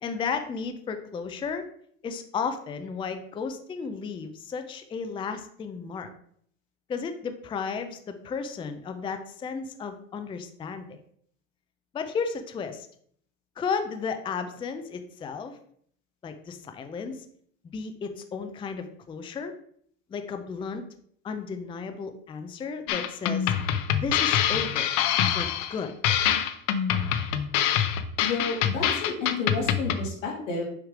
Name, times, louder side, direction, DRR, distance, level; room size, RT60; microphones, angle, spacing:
voice 1, 0.0-1.6 2.0-6.1 6.9-11.0 11.9-12.9 13.6-15.6 16.2-17.3 17.7-19.5 20.1-20.8 21.2-23.5 24.0-24.9 25.2-25.9, left 5 dB, 15° left, 8 dB, 0.4 m, -34 dB
sound 1, 22.9-30.1, left 9 dB, 55° left, 0.7 m, -25 dB
voice 2, 28.2-30.7, left 4 dB, 90° left, -1 dB, 2.5 m, -31 dB
6.4 x 3.2 x 4.9 m, 0.63 s
supercardioid pair, 120°, 38 cm